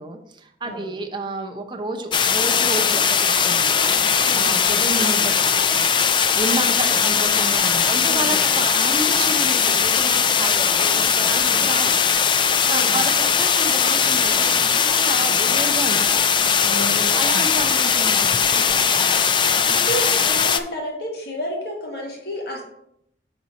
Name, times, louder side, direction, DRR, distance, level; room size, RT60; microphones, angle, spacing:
voice 1, 0.0-5.9 6.3-11.9 12.3-16.5 17.2-19.1, right 2 dB, 25° right, 5 dB, 0.7 m, -31 dB
sound 1, 2.1-20.6, left 7 dB, 25° left, 0.3 m, -19 dB
voice 2, 4.2-4.6 6.6-6.7 8.0-8.4 11.3-11.7 12.7-13.0 16.6-17.3 19.6-22.6, equal, 65° left, 0 dB, 1.6 m, -31 dB
6.0 x 4.1 x 5.3 m, 0.75 s
head